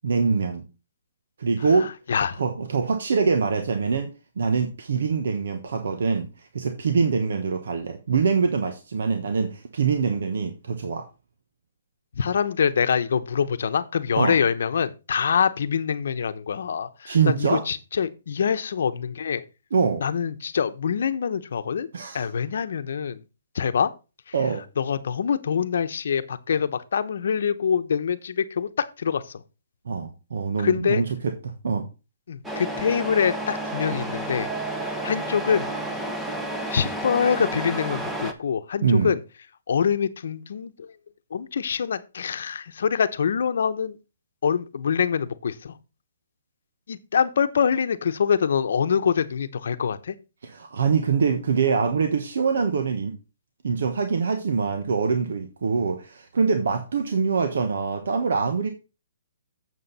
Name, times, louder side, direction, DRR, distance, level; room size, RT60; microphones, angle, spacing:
voice 1, 0.0-0.6 1.4-2.0 2.4-11.1 14.2-14.3 17.0-17.6 19.7-20.0 21.9-22.2 24.3-24.6 29.8-31.9 38.8-39.1 50.4-53.2 53.6-58.7, right 5 dB, 70° right, 1.3 m, -24 dB
voice 2, 1.8-2.4 12.1-19.4 20.0-21.9 22.1-23.2 23.5-23.9 24.8-29.4 30.6-31.0 32.3-34.5 35.0-35.7 36.7-39.2 39.7-40.9 41.3-44.0 44.4-45.8 46.9-50.2, left 7 dB, 65° left, 0.9 m, -25 dB
Truck, 32.4-38.3, right 1 dB, 5° right, 0.9 m, -31 dB
7.9 x 7.4 x 4.1 m
hypercardioid pair, 160°, 0 cm